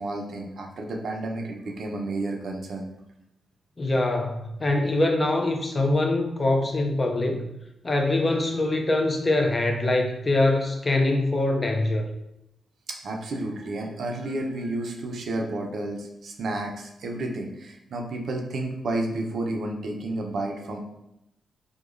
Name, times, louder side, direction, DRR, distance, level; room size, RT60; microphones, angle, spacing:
voice 1, 0.0-2.9 12.9-20.8, right 2 dB, 60° right, 1 dB, 0.5 m, -31 dB
voice 2, 3.8-7.5 7.8-12.0, left 2 dB, 25° left, 3 dB, 0.4 m, -23 dB
4.8 x 2.2 x 2.5 m, 0.85 s
wide cardioid pair, 145°, 0 cm